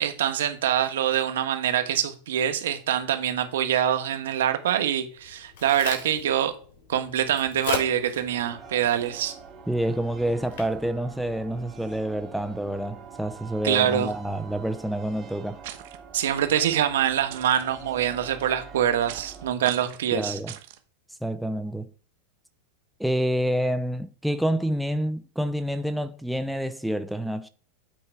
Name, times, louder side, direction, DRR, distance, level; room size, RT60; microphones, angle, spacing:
voice 1, 0.0-6.5 6.9-9.3 13.6-14.1 16.1-20.4, right 10 dB, 85° right, 1.3 m, -25 dB
Crack, 5.1-12.1, left 5 dB, 60° left, 3.6 m, -39 dB
sound 1, 8.3-19.5, right 6 dB, 20° right, 1.9 m, -45 dB
voice 2, 9.7-15.6 20.1-20.5 21.2-21.9 23.0-27.5, right 1 dB, ahead, 0.5 m, -28 dB
sound 2, 15.6-16.0 17.3-17.6 19.1-19.4 19.6-20.0 20.5-20.8, right 13 dB, 65° right, 1.1 m, -40 dB
8.6 x 4.6 x 4.6 m
supercardioid pair, 145°, 0 cm